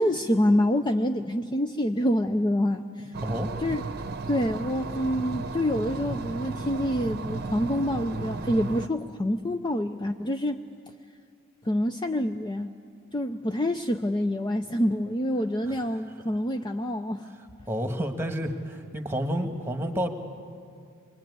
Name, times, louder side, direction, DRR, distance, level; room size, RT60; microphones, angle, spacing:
voice 1, 0.0-3.1 3.6-3.8 4.3-10.6 11.6-12.7 13.1-17.3, left 1 dB, 20° left, 6 dB, 0.5 m, -26 dB
sound 1, 3.1-8.9, right 3 dB, 45° right, 0.8 m, -34 dB
voice 2, 17.7-20.1, equal, 10° right, 6 dB, 1.6 m, -30 dB
24.0 x 21.0 x 9.5 m, 2.3 s
head